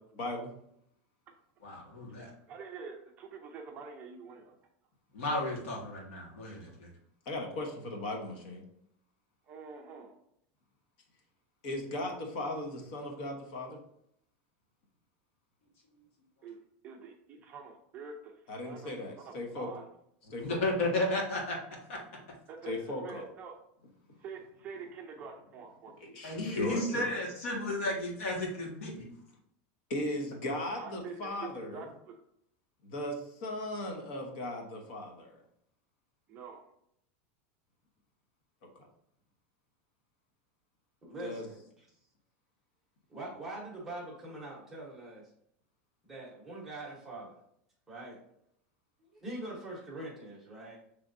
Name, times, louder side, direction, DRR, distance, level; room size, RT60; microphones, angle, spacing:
voice 1, 0.2-0.5 7.3-8.6 11.6-13.8 18.5-19.8 20.3-20.6 22.6-23.2 26.0-27.1 29.9-31.9 32.8-35.4 41.2-41.5, left 1 dB, 50° left, 2 dB, 1.0 m, -37 dB
voice 2, 1.6-2.3 5.1-6.9 20.4-21.6 21.9-22.0 26.2-29.1, left 1 dB, 85° left, -1 dB, 1.6 m, -33 dB
voice 3, 2.5-4.5 9.5-10.1 16.4-16.6 16.8-18.4 18.6-18.9 19.2-19.9 22.5-23.5 24.2-25.9 30.8-32.2 36.3-36.6, right 5 dB, 25° right, 2 dB, 0.5 m, -46 dB
voice 4, 41.0-41.6 43.1-45.3 46.0-47.4 47.9-48.2 49.1-50.8, right 2 dB, 5° right, -5 dB, 1.0 m, -43 dB
6.0 x 3.3 x 2.6 m, 0.73 s
supercardioid pair, 180°, 7 cm